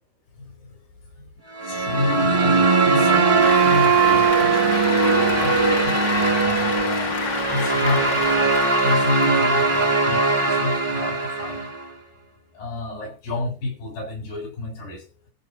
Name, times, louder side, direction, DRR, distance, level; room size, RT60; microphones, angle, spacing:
voice 1, 0.4-0.8 1.6-6.0 6.4-7.2 7.5-8.6 8.8-11.7 12.5-15.0, left 2 dB, 85° left, 9.6 m, -30 dB
sound 1, 1.5-11.9, right 3 dB, 20° right, 0.8 m, -21 dB
Wind instrument woodwind instrument, 2.3-6.2, right 10 dB, 85° right, 3.0 m, -22 dB
Cheering / Applause, 3.4-10.3, left 6 dB, 50° left, 1.4 m, -30 dB
14.5 x 5.5 x 7.8 m
omnidirectional pair, 4.4 m